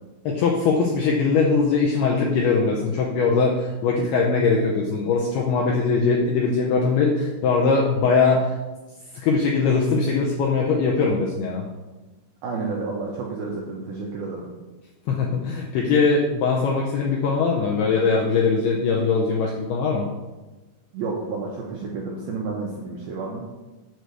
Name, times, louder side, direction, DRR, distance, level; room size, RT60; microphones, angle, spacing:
voice 1, 0.3-8.5 9.1-11.7 15.1-20.1, left 4 dB, 80° left, -2 dB, 2.3 m, -21 dB
voice 2, 12.4-14.5 20.9-23.5, right 4 dB, 80° right, -2 dB, 2.2 m, -30 dB
7.7 x 4.7 x 6.7 m, 1.1 s
omnidirectional pair, 5.6 m